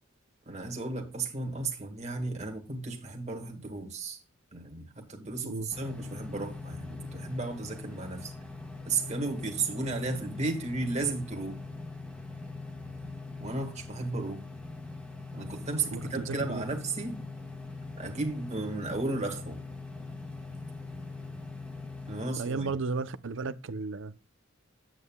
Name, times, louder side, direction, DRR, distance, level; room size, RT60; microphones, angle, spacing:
voice 1, 0.5-4.2 4.5-8.3 8.9-11.6 13.4-14.5 15.3-17.2 18.0-19.6 22.1-22.7, right 3 dB, 35° right, 1.9 m, -34 dB
sound 1, 5.7-22.3, left 3 dB, 5° left, 1.2 m, -42 dB
voice 2, 15.9-16.7 22.4-24.1, right 4 dB, 70° right, 0.6 m, -34 dB
9.2 x 8.3 x 2.3 m
head